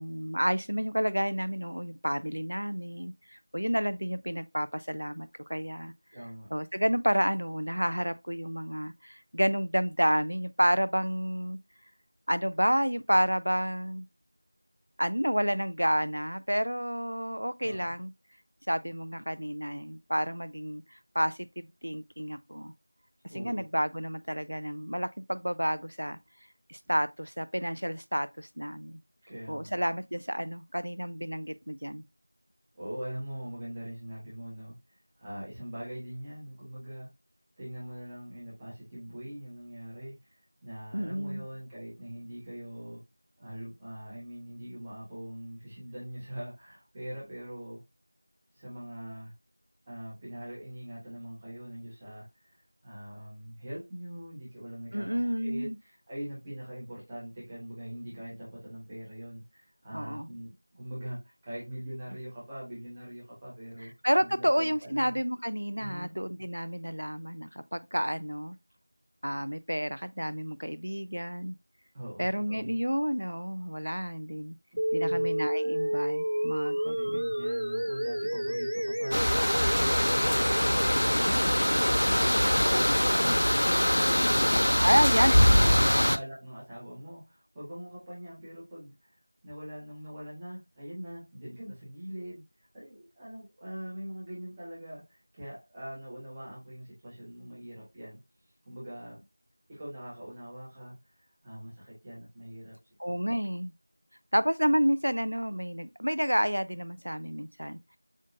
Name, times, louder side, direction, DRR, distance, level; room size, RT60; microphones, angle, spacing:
voice 1, 0.0-5.9 6.5-11.6 12.3-14.1 15.0-18.1 18.7-21.5 21.8-22.7 23.3-26.2 26.7-29.0 29.5-32.0 40.9-41.4 54.9-55.8 59.9-60.3 64.0-68.6 69.2-71.6 72.2-74.6 74.9-77.2 84.8-85.9 103.0-103.7 104.3-107.8, equal, 85° right, 0.6 m, -30 dB
voice 2, 6.1-6.5 17.6-17.9 23.3-23.6 29.3-29.8 32.7-34.8 35.2-37.1 37.6-40.4 40.6-43.0 43.4-47.8 48.5-49.3 49.9-52.5 52.8-63.9 64.2-65.2 65.8-66.1 71.9-72.8 74.9-75.3 76.9-79.7 80.0-83.8 84.1-85.8 86.1-89.1 89.4-92.4 92.7-98.2 98.7-99.2 99.7-100.9 101.4-102.8, equal, 5° right, 0.6 m, -42 dB
sound 1, 74.8-84.8, equal, 55° right, 0.8 m, -31 dB
sound 2, 79.1-86.2, equal, 45° left, 0.5 m, -23 dB
7.3 x 2.6 x 2.6 m
figure-of-eight pair, 180°, 0 cm